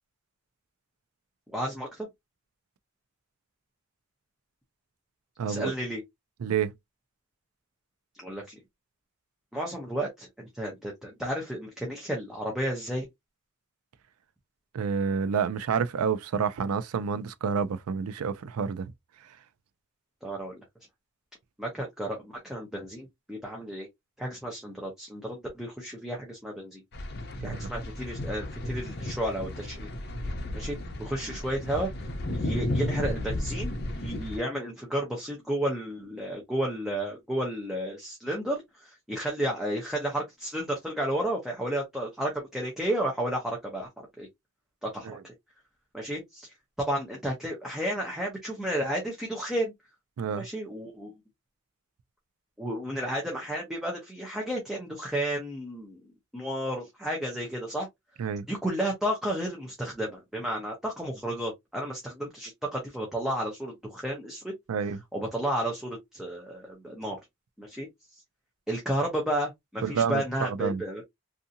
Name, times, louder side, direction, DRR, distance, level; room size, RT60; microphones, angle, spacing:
voice 1, 1.5-2.1 5.4-6.0 8.2-8.6 9.5-13.1 20.2-20.6 21.6-23.9 24.2-26.8 27.4-29.9 30.5-43.9 44.2-44.3 44.8-45.3 45.9-49.7 50.3-51.1 52.6-56.0 56.3-57.9 58.5-64.5 65.1-67.2 67.6-67.9 68.7-71.0, right 1 dB, ahead, 0.6 m, -32 dB
voice 2, 5.4-5.7 6.4-6.7 14.7-18.9 27.4-27.7 31.3-31.4 45.0-45.2 50.2-50.5 58.2-58.5 64.7-65.0 69.8-70.8, right 6 dB, 90° right, 0.4 m, -29 dB
sound 1, 26.9-34.4, left 1 dB, 50° left, 0.6 m, -33 dB
2.6 x 2.5 x 2.6 m
head